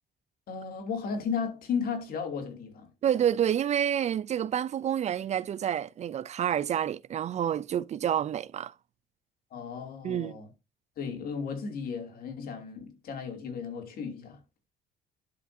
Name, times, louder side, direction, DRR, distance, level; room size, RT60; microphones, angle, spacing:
voice 1, 0.5-2.9 9.5-10.5 11.0-14.4, left 6 dB, 60° left, 2.7 m, -34 dB
voice 2, 3.0-8.7 10.0-10.4, right 10 dB, 40° right, 0.4 m, -28 dB
11.0 x 5.0 x 2.7 m
cardioid pair, 110°, 17 cm